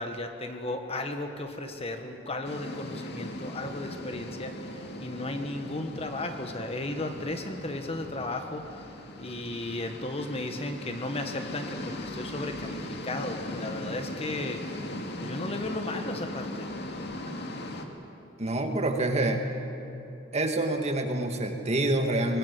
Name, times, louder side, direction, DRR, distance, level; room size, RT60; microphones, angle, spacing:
voice 1, 0.0-8.8 9.2-16.7, left 2 dB, 30° left, 5 dB, 1.6 m, -35 dB
sound 1, 2.4-17.8, left 1 dB, 55° left, 2.2 m, -39 dB
voice 2, 18.4-19.4 20.3-22.4, right 2 dB, 35° right, 4 dB, 1.9 m, -27 dB
24.0 x 20.0 x 8.4 m, 3.0 s
head